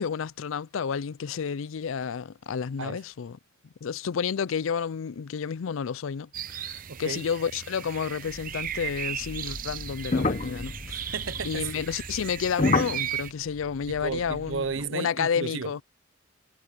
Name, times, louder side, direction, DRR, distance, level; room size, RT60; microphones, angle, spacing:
voice 1, 0.0-3.4 3.8-11.1 11.4-15.8, left 6 dB, 85° left, 0.4 m, -31 dB
sound 1, 6.3-13.3, right 10 dB, 45° right, 0.7 m, -36 dB
voice 2, 6.9-7.2 10.9-11.8 13.9-15.8, right 5 dB, 75° right, 0.9 m, -34 dB
sound 2, 8.3-14.8, left 3 dB, 35° left, 0.8 m, -32 dB
head